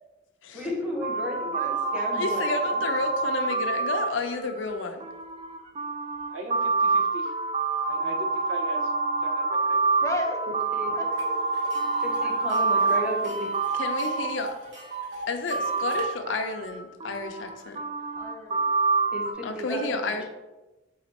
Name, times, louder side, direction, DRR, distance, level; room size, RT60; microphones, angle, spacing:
voice 1, 0.5-2.8 10.7-10.9 12.0-13.5 19.1-20.2, equal, 5° right, -4 dB, 1.0 m, -34 dB
sound 1, 1.0-14.8 15.5-19.3, right 3 dB, 30° right, 0.3 m, -27 dB
voice 2, 1.5-2.5 10.0-10.5 10.8-12.3 12.6-13.3 18.2-18.7, left 1 dB, 15° left, 1 dB, 0.6 m, -37 dB
voice 3, 2.1-5.0 13.7-14.5 15.3-17.8 19.4-20.2, left 3 dB, 75° left, 6 dB, 0.5 m, -31 dB
voice 4, 6.3-7.3 7.8-8.9 9.2-9.8, right 2 dB, 85° right, 4 dB, 0.6 m, -39 dB
Tick, 11.2-11.3 11.5-16.0, right 4 dB, 65° right, 1.0 m, -38 dB
4.1 x 2.4 x 4.2 m, 1.1 s
head